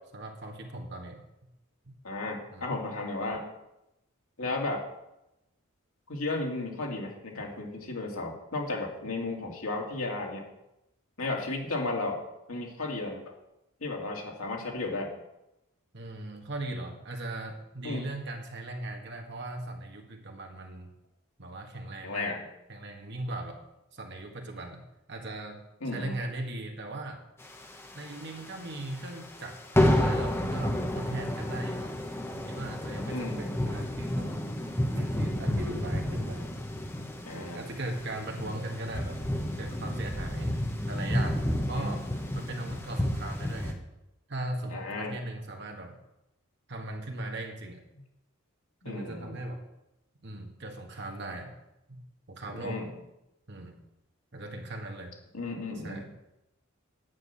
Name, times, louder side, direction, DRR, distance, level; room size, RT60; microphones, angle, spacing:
voice 1, 0.1-1.2 1.8-2.0 2.5-2.7 15.9-20.9 21.4-22.3 22.7-23.6 23.9-25.6 25.9-27.2 27.9-31.9 32.3-34.5 34.9-36.5 37.3-39.2 39.6-40.5 40.9-42.1 42.3-43.8 44.3-46.0 46.7-47.8 48.8-49.6 50.2-51.5 51.9-53.0 53.5-53.8 54.3-55.1 55.8-56.1, right 1 dB, 55° right, 3 dB, 1.7 m, -39 dB
voice 2, 2.0-3.5 4.4-4.8 6.1-10.4 11.2-12.2 12.5-13.3 13.8-15.1 17.8-18.1 22.0-22.4 25.8-26.2 33.1-33.4 37.3-37.6 41.7-41.9 44.7-45.2 48.8-49.4 52.5-52.9 55.3-56.1, left 2 dB, 80° left, 0 dB, 2.6 m, -34 dB
sound 1, 27.5-28.5 28.8-29.0 29.3-29.5 29.7-43.7, left 1 dB, 10° left, 1.1 m, -30 dB
9.5 x 6.0 x 8.3 m, 0.90 s
head